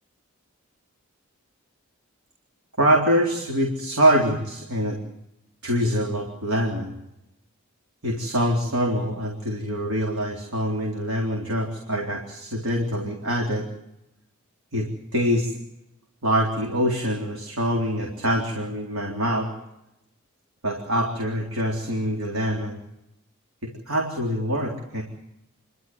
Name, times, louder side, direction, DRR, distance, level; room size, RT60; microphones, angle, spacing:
voice 1, 2.8-5.0 5.6-7.0 8.0-13.7 14.7-15.5 16.2-19.5 20.6-22.8 23.6-25.0, equal, 80° right, 0 dB, 3.8 m, -24 dB
28.5 x 12.5 x 9.4 m, 0.87 s
head